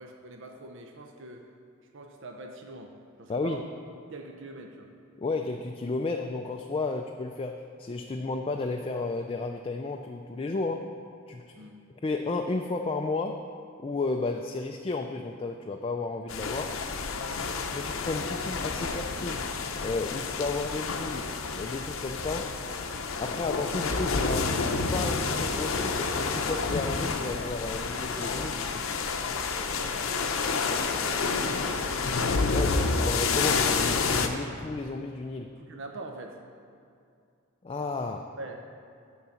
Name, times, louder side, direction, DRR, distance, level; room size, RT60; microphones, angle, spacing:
voice 1, 0.0-1.5 1.9-3.7 4.1-4.9 11.5-11.8 30.6-32.1 35.6-36.4 38.4-38.6, right 2 dB, 60° right, 2 dB, 0.7 m, -43 dB
voice 2, 3.3-3.6 5.2-10.9 11.3-11.7 12.0-13.4 13.8-16.8 17.7-19.5 19.8-21.3 21.5-22.5 23.2-24.6 24.9-28.7 32.5-35.5 37.6-38.3, left 3 dB, 25° left, 4 dB, 0.3 m, -33 dB
sound 1, 16.3-34.3, left 4 dB, 75° left, 0.7 m, -29 dB
12.0 x 4.0 x 7.1 m, 2.4 s
head